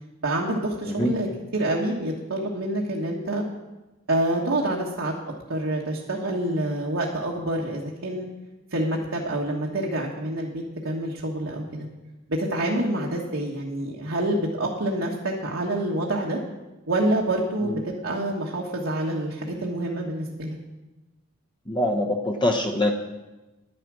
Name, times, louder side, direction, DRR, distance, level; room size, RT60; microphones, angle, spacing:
voice 1, 0.2-1.3 1.5-3.4 4.1-5.1 5.5-8.3 8.7-11.9 12.3-16.4 16.9-20.6, right 1 dB, 70° right, -3 dB, 1.4 m, -27 dB
voice 2, 21.7-22.9, left 1 dB, 20° left, 2 dB, 0.9 m, -24 dB
11.0 x 9.9 x 6.2 m, 1.1 s
head